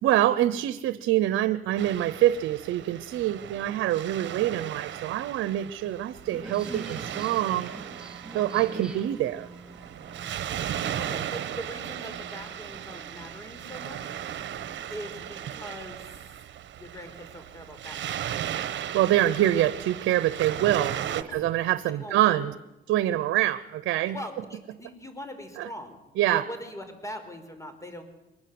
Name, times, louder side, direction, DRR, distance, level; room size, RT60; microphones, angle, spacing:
voice 1, 0.0-7.7 8.3-9.5 18.9-21.0 21.3-22.5 22.9-24.2 25.6-25.7 26.2-26.4, right 13 dB, 85° right, 14 dB, 0.9 m, -25 dB
Waves surf, 1.8-21.2, right 10 dB, 65° right, 1.3 m, -36 dB
sound 1, 6.2-15.6, right 2 dB, 5° right, 3.5 m, -45 dB
voice 2, 10.7-14.1 14.9-16.0 16.8-18.2 21.3-21.5 21.9-22.4 24.1-26.0 26.3-28.0, equal, 15° left, 8 dB, 4.9 m, -41 dB
24.0 x 20.5 x 7.9 m, 0.96 s
cardioid pair, 90°, 20 cm